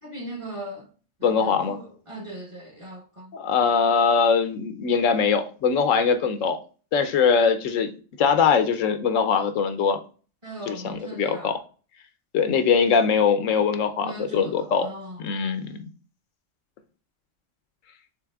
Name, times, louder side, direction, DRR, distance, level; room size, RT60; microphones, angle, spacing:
voice 1, 0.0-0.9 1.2-3.3 10.4-11.6 14.0-15.2, right 1 dB, 25° right, 1.0 m, -38 dB
voice 2, 1.2-1.8 3.3-6.6 6.9-7.9 8.2-10.0 10.7-11.5 12.3-14.9 15.2-15.8, left 6 dB, 80° left, 1.0 m, -22 dB
5.8 x 3.9 x 2.3 m
omnidirectional pair, 1.3 m